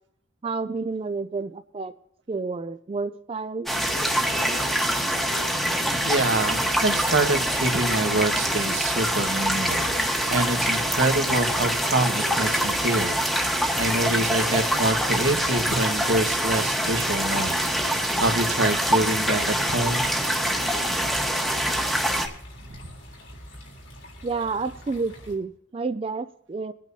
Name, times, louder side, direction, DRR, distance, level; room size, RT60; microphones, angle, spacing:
voice 1, 0.4-1.9 2.3-3.7 24.2-26.7, right 4 dB, 30° right, 10 dB, 0.3 m, -30 dB
sound 1, 3.7-22.3, equal, ahead, 1.2 m, -25 dB
voice 2, 6.0-20.0 22.6-22.8, right 2 dB, 90° right, 5 dB, 1.4 m, -26 dB
sound 2, 6.5-25.3, left 1 dB, 90° left, 3.4 m, -46 dB
24.0 x 9.1 x 2.7 m, 0.75 s
head